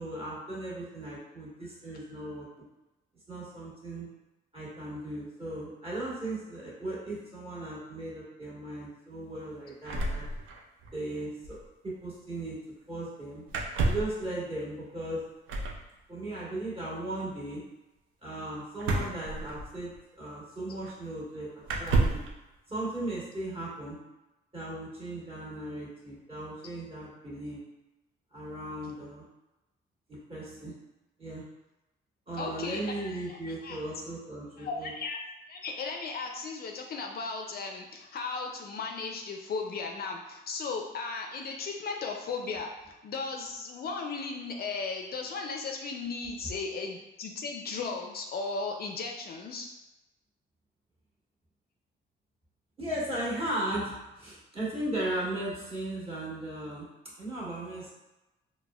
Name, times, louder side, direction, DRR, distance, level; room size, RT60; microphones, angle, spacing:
voice 1, 0.0-2.5 3.3-4.1 4.5-10.2 10.9-11.6 11.8-12.6 12.9-13.4 13.8-15.2 16.1-17.6 18.2-22.2 22.7-24.0 24.5-27.6 28.3-29.3 30.1-30.7 31.2-31.4 32.3-34.9 52.8-57.9, right 1 dB, 30° right, -7 dB, 1.5 m, -37 dB
sound 1, 9.9-10.9 11.2-11.3 11.4-11.7 13.5-14.2 15.5-15.8 18.8-20.0 20.8-20.9 21.6-22.3, right 2 dB, 75° right, 0.5 m, -30 dB
voice 2, 32.4-33.4 33.6-33.8 34.6-35.2 35.5-49.7, left 4 dB, 50° left, 2 dB, 0.4 m, -36 dB
4.0 x 2.1 x 2.3 m, 1.0 s
cardioid pair, 90°, 20 cm